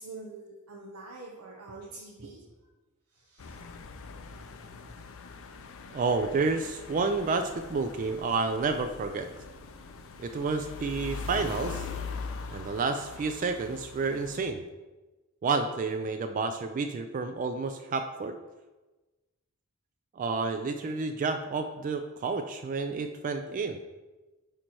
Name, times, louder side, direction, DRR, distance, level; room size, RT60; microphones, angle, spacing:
voice 1, 0.0-2.4 3.1-3.7, right 3 dB, 80° right, -2 dB, 0.8 m, -45 dB
sound 1, 3.4-14.5, left 4 dB, 65° left, 0.6 m, -42 dB
voice 2, 5.9-9.3 10.2-11.9 12.5-14.6 15.4-18.4 20.2-23.8, right 4 dB, 35° right, 7 dB, 0.3 m, -30 dB
8.8 x 3.1 x 4.3 m, 1.2 s
head